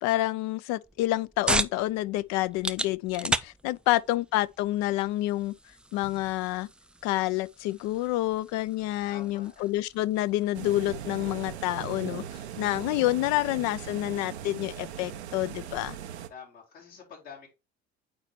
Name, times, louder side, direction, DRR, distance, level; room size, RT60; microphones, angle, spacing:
voice 1, 0.0-5.5 5.9-6.7 7.0-12.2 12.6-16.0, left 16 dB, 55° left, 0.4 m, -28 dB
sound 1, 0.8-16.0, right 1 dB, 5° right, 0.4 m, -38 dB
voice 2, 9.1-9.6 16.3-17.5, left 6 dB, 85° left, 4.1 m, -47 dB
sound 2, 10.5-16.3, right 9 dB, 90° right, 0.6 m, -39 dB
8.8 x 4.1 x 2.9 m
hypercardioid pair, 65°, 32 cm